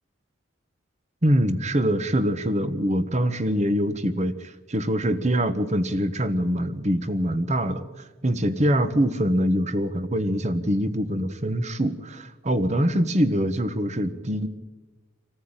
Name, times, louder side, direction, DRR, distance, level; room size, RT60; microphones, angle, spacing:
voice 1, 1.2-7.9 8.2-14.5, equal, 35° right, 12 dB, 1.3 m, -24 dB
26.0 x 14.0 x 9.0 m, 1.2 s
head